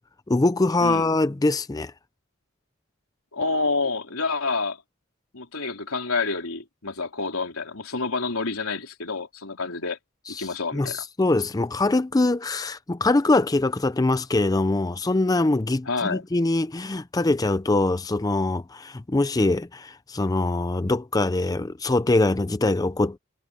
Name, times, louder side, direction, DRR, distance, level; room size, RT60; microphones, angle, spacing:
voice 1, 0.3-1.9 10.3-23.2, left 2 dB, 15° left, 0.4 m, -23 dB
voice 2, 0.8-1.1 3.3-4.8 5.3-10.0 10.3-11.0 15.9-16.2, left 3 dB, 90° left, 3.8 m, -28 dB
head